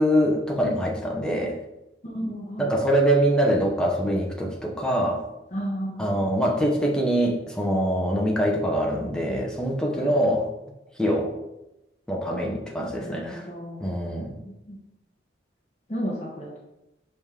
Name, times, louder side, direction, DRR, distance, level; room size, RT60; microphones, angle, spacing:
voice 1, 0.0-1.6 2.6-5.3 6.0-10.5 11.0-11.3 12.1-13.5 13.8-14.4, equal, 5° left, -1 dB, 0.9 m, -24 dB
voice 2, 2.0-2.8 5.5-6.3 10.0-10.2 13.0-13.9 14.2-14.8 15.9-16.5, equal, 40° left, -2 dB, 1.1 m, -33 dB
6.1 x 5.2 x 3.7 m, 0.93 s
head